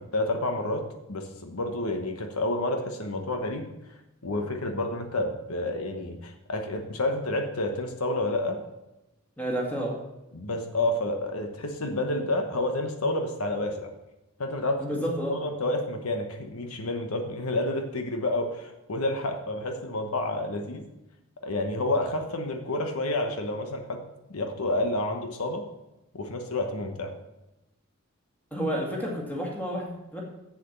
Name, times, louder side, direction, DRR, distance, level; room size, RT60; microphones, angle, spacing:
voice 1, 0.0-3.7 4.2-8.6 10.3-13.9 14.4-15.0 15.3-20.9 21.4-24.0 24.3-25.6 26.1-27.1, left 2 dB, 85° left, 5 dB, 1.1 m, -29 dB
voice 2, 9.4-10.0 14.8-15.3 28.5-30.2, equal, 10° left, -2 dB, 2.1 m, -30 dB
7.7 x 7.1 x 6.8 m, 0.96 s
head